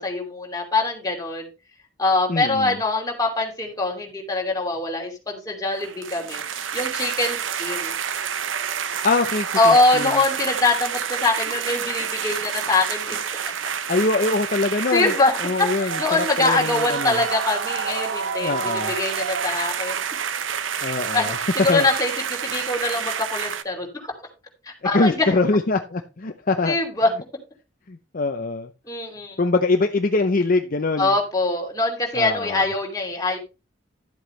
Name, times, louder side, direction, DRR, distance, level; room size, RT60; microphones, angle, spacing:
voice 1, 0.0-1.5 2.0-6.4 6.7-7.9 9.6-13.2 14.9-15.3 15.6-20.0 20.8-24.1 24.7-25.3 26.7-27.1 28.9-29.4 31.0-33.4, left 2 dB, 20° left, 0 dB, 2.7 m, -23 dB
voice 2, 2.3-2.8 9.0-10.2 13.9-15.1 15.4-17.2 18.4-18.9 20.8-21.4 21.7-21.9 24.8-26.8 27.9-28.7 29.4-31.1 32.1-32.7, left 3 dB, 45° left, 6 dB, 0.7 m, -23 dB
sound 1, 5.7-23.6, right 7 dB, 70° right, 0.8 m, -28 dB
12.0 x 7.9 x 3.2 m, 0.29 s
head